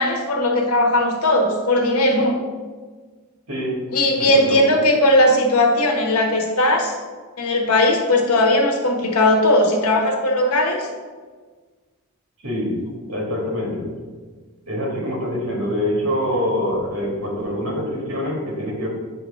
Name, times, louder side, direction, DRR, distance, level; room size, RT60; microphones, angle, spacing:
voice 1, 0.0-2.4 3.9-6.9 7.4-10.9, left 1 dB, 85° left, 1 dB, 1.1 m, -18 dB
voice 2, 3.5-3.8 4.2-4.7 12.4-12.8 13.1-13.9 14.7-18.9, equal, 80° right, -2 dB, 2.1 m, -25 dB
7.8 x 2.9 x 5.5 m, 1.4 s
head